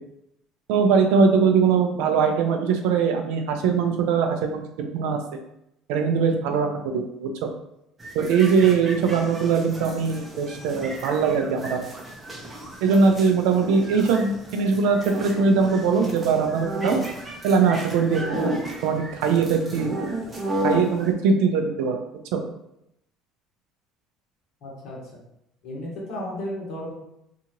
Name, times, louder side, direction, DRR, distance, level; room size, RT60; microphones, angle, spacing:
voice 1, 0.7-5.2 5.9-7.5 8.1-11.9 12.8-17.0 17.4-20.1 20.6-22.0 22.3-22.4, right 5 dB, 85° right, 5 dB, 0.4 m, -21 dB
sound 1, 8.0-21.1, right 1 dB, 15° right, 0.6 m, -33 dB
voice 2, 24.6-25.0 25.6-26.9, left 1 dB, 60° left, -4 dB, 1.2 m, -33 dB
2.8 x 2.5 x 2.9 m, 0.81 s
cardioid pair, 130°, 0 cm